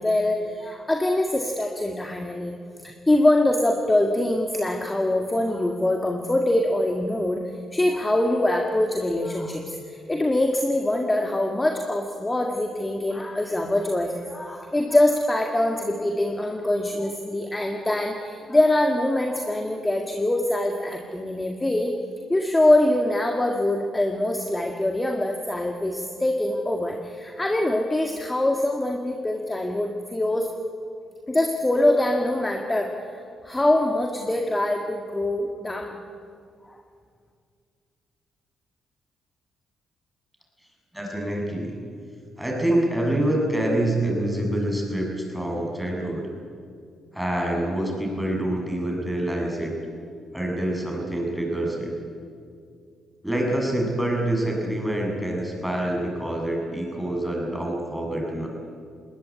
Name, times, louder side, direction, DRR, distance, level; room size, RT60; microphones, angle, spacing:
voice 1, 0.0-2.5 2.8-7.4 7.7-21.9 22.3-30.5 31.3-36.0 36.7-36.8, left 1 dB, 15° left, 3 dB, 2.0 m, -24 dB
voice 2, 40.9-41.8 42.4-46.3 47.1-49.7 50.3-51.9 53.2-58.5, right 1 dB, 5° right, 0 dB, 6.9 m, -26 dB
20.5 x 19.0 x 9.6 m, 2.2 s
cardioid pair, 90°, 0 cm